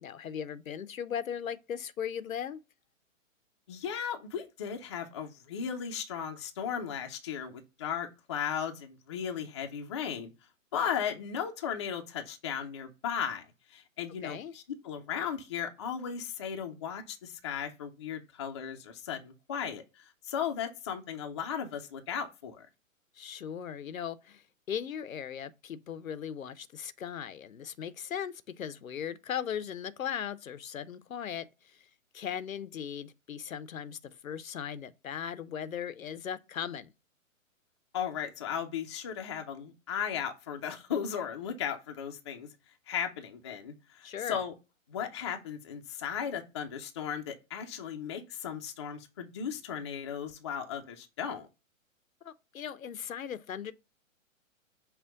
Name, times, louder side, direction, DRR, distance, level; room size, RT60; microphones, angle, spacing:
voice 1, 0.0-2.6 14.2-14.5 23.2-31.9 32.1-36.9 44.0-44.4 52.2-53.7, left 8 dB, 85° left, 0.6 m, -38 dB
voice 2, 3.7-10.3 10.7-22.7 37.9-42.5 42.9-44.5 44.9-51.5, left 8 dB, 25° left, 0.4 m, -36 dB
5.6 x 2.2 x 3.7 m
figure-of-eight pair, 125°, 40 cm